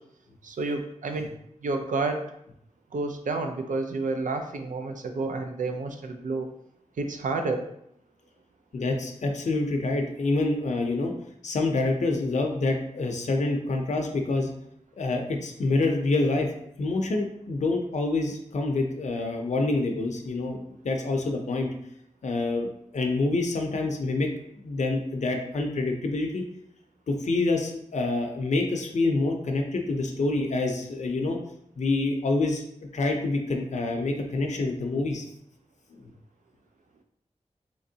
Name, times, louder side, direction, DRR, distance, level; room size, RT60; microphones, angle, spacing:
voice 1, 0.4-1.3 1.6-2.2 2.9-6.5 7.0-7.7, right 3 dB, 85° right, 5 dB, 0.4 m, -30 dB
voice 2, 8.7-11.1 11.4-14.5 15.0-16.5 16.8-20.6 20.8-21.7 22.2-24.3 24.6-26.4 27.1-31.4 31.8-32.6 32.9-35.2 35.9-36.1, left 2 dB, 65° left, 2 dB, 0.5 m, -27 dB
3.5 x 2.9 x 2.7 m, 0.74 s
wide cardioid pair, 100°, 13 cm